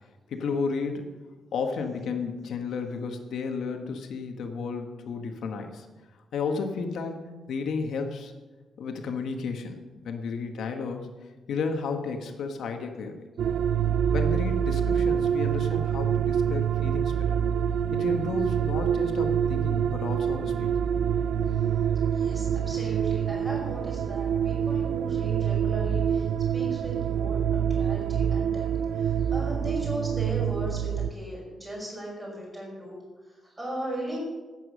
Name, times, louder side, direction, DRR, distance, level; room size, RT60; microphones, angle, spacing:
voice 1, 0.3-1.1 1.5-5.9 6.3-8.3 8.8-9.8 10.0-11.1 11.5-13.3 14.1-17.4 17.9-20.9, left 4 dB, 75° left, 5 dB, 1.5 m, -32 dB
sound 1, 13.4-31.1, right 8 dB, 85° right, 0.4 m, -26 dB
voice 2, 22.1-34.2, right 1 dB, 15° right, -4 dB, 5.3 m, -37 dB
11.5 x 9.1 x 6.5 m, 1.2 s
wide cardioid pair, 180°, 0 cm